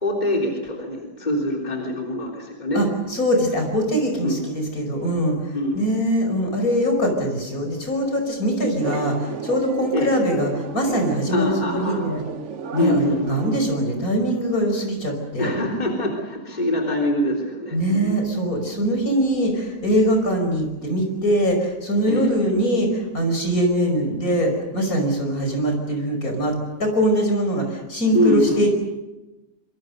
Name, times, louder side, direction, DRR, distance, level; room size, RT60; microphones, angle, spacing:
voice 1, 0.0-2.8 4.2-4.4 5.5-5.8 9.9-10.1 11.3-12.2 12.8-13.4 15.4-18.2 22.1-22.3 28.1-28.7, left 1 dB, 25° left, 0 dB, 3.7 m, -24 dB
voice 2, 2.7-12.2 12.7-15.5 17.7-28.7, equal, 55° left, 3 dB, 5.8 m, -22 dB
sound 1, 8.8-13.8, right 5 dB, 50° right, 1.2 m, -32 dB
26.5 x 24.5 x 6.6 m, 1.0 s
omnidirectional pair, 1.8 m